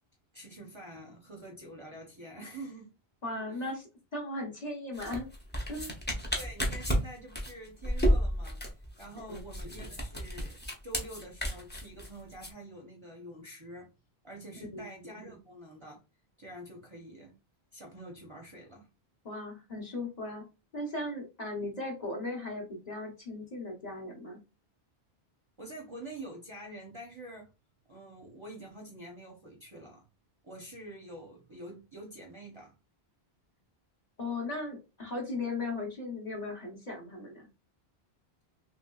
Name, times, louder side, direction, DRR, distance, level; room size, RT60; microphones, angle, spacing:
voice 1, 0.3-2.9 3.5-3.7 6.3-8.6 9.0-10.6 10.8-13.9 14.2-16.0 16.4-17.3 17.7-18.9 25.6-27.5 27.9-30.1 30.4-32.7, right 1 dB, 35° right, 0.6 m, -46 dB
voice 2, 3.2-5.3 5.7-5.9 9.3-9.4 14.7-14.9 19.2-20.4 20.7-24.4 34.2-37.5, left 2 dB, 40° left, 0.9 m, -37 dB
sound 1, 4.9-12.5, equal, 15° left, 0.4 m, -31 dB
3.0 x 2.9 x 2.2 m
omnidirectional pair, 1.1 m